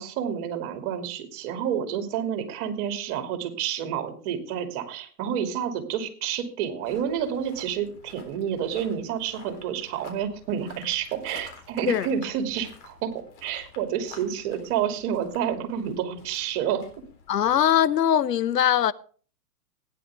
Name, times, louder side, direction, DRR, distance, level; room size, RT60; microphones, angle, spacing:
voice 1, 0.0-13.1 13.4-16.8, right 9 dB, 40° right, 2.6 m, -29 dB
sound 1, 6.8-17.9, left 5 dB, 45° left, 3.8 m, -50 dB
voice 2, 17.3-18.9, left 10 dB, 80° left, 0.9 m, -21 dB
16.0 x 10.0 x 3.5 m
hypercardioid pair, 120°, 48 cm